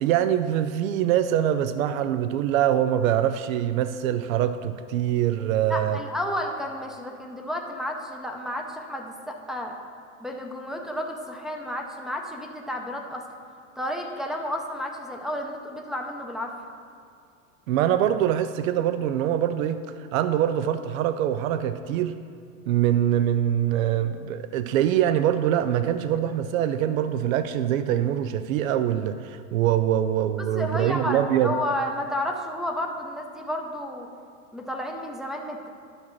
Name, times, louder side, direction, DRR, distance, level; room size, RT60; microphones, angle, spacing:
voice 1, 0.0-6.0 17.7-19.8 20.1-22.1 22.7-31.5, right 11 dB, 80° right, 11 dB, 0.5 m, -24 dB
voice 2, 5.7-9.8 10.2-13.2 13.8-16.5 30.4-34.1 34.5-35.7, left 1 dB, ahead, 0 dB, 0.5 m, -31 dB
11.5 x 5.8 x 3.1 m, 2.3 s
hypercardioid pair, 120°, 40 cm